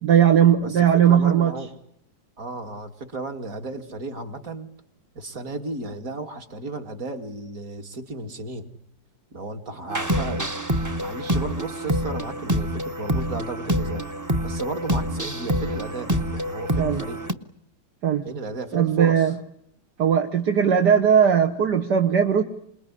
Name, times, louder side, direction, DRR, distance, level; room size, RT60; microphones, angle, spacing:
voice 1, 0.0-1.5 16.8-17.0 18.0-18.2 18.7-19.4 20.0-22.4, right 8 dB, 65° right, 3 dB, 2.1 m, -18 dB
voice 2, 0.6-1.7 2.4-4.7 5.1-8.7 9.3-10.5 11.0-14.0 14.4-17.2 18.2-19.2, right 3 dB, 50° right, 5 dB, 2.9 m, -34 dB
sound 1, 9.9-17.3, equal, 15° right, 0.9 m, -26 dB
28.0 x 20.5 x 10.0 m, 0.73 s
omnidirectional pair, 1.9 m